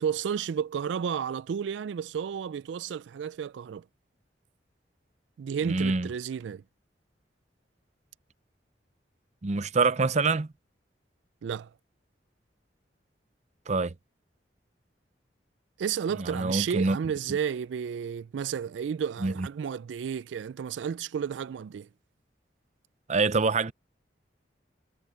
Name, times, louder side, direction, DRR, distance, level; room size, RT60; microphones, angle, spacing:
voice 1, 0.0-3.8 5.4-6.6 11.4-11.7 15.8-21.9, right 7 dB, 90° right, 0.3 m, -32 dB
voice 2, 5.6-6.1 9.4-10.5 13.7-13.9 16.2-17.0 19.2-19.5 23.1-23.7, right 3 dB, 40° right, 0.6 m, -25 dB
head